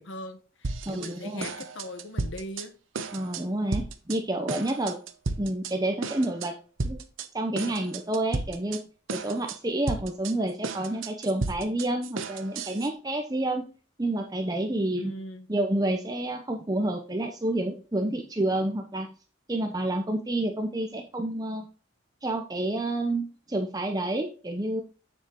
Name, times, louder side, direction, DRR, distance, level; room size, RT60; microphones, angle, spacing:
voice 1, 0.0-2.7 15.0-15.5, left 1 dB, 70° left, 9 dB, 1.1 m, -40 dB
sound 1, 0.6-1.1 1.4-2.7 2.9-3.4 3.7-4.2 4.5-5.7 6.0-6.5 6.8-7.3 7.6-8.8 9.1-9.6 9.9-12.9, right 3 dB, 80° right, 0.9 m, -33 dB
voice 2, 0.9-1.5 3.1-5.0 5.4-6.5 6.8-7.0 7.3-8.8 9.1-13.6 14.0-15.1 15.5-19.1 19.5-21.6 22.2-24.8, right 1 dB, 20° right, 3 dB, 0.7 m, -29 dB
8.1 x 7.2 x 3.0 m, 0.37 s
head